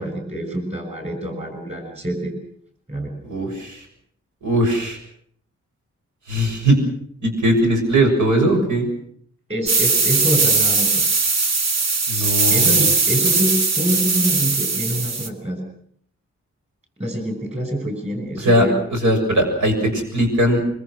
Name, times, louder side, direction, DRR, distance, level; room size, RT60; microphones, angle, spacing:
voice 1, 0.0-2.3 2.9-3.2 9.5-11.1 12.1-15.6 17.0-18.7, right 1 dB, 20° right, 5 dB, 6.4 m, -26 dB
voice 2, 3.2-3.8 4.4-5.0 6.3-6.8 7.2-8.9 12.1-12.9 18.4-20.6, right 1 dB, 80° right, 3 dB, 7.1 m, -19 dB
sound 1, 9.7-15.3, right 4 dB, 60° right, 2.0 m, -19 dB
25.0 x 24.0 x 6.3 m, 0.63 s
wide cardioid pair, 175°, 29 cm